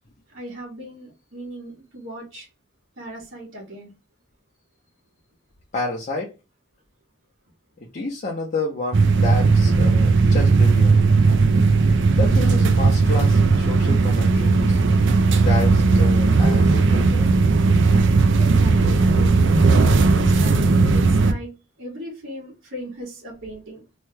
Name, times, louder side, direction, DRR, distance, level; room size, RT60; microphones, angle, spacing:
voice 1, 0.3-2.5 3.0-3.9 18.4-21.5 21.8-23.8, right 1 dB, 85° right, 1.4 m, -37 dB
voice 2, 5.7-6.3 7.9-11.0 12.2-14.8 15.3-17.3, left 3 dB, 40° left, 0.6 m, -29 dB
sound 1, 8.9-21.3, right 3 dB, 65° right, 0.4 m, -16 dB
3.1 x 2.2 x 3.2 m
head